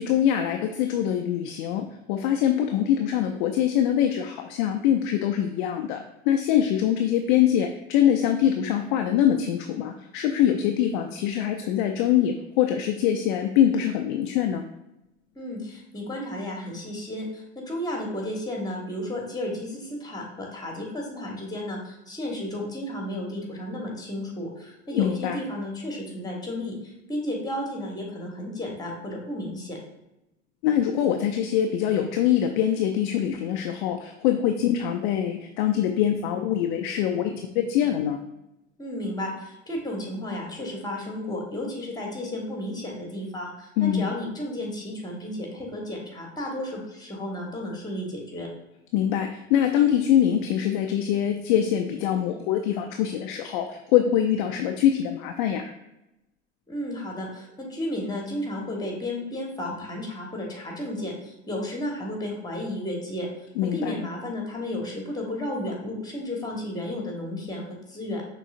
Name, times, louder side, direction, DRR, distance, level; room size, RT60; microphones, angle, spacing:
voice 1, 0.0-14.7 24.9-25.4 30.6-38.2 43.8-44.1 48.9-55.7 63.6-63.9, left 10 dB, 45° left, 5 dB, 0.4 m, -24 dB
voice 2, 15.3-29.8 38.8-48.5 56.7-63.3 63.6-68.2, left 1 dB, 10° left, 0 dB, 1.2 m, -33 dB
6.0 x 3.1 x 2.4 m, 0.90 s
figure-of-eight pair, 75°, 37 cm